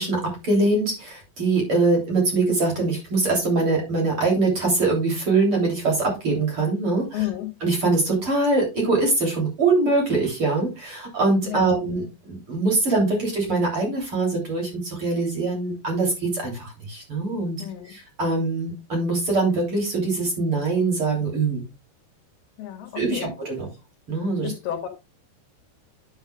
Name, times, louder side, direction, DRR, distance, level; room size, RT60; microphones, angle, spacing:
voice 1, 0.0-7.2 7.6-17.6 17.9-21.6 23.0-23.7 24.1-24.5, right 3 dB, 35° right, 3.6 m, -23 dB
voice 2, 7.1-7.5 11.4-11.8 17.6-17.9 22.6-23.6 24.4-24.9, left 12 dB, 75° left, 3.1 m, -32 dB
10.0 x 8.1 x 2.3 m
omnidirectional pair, 4.8 m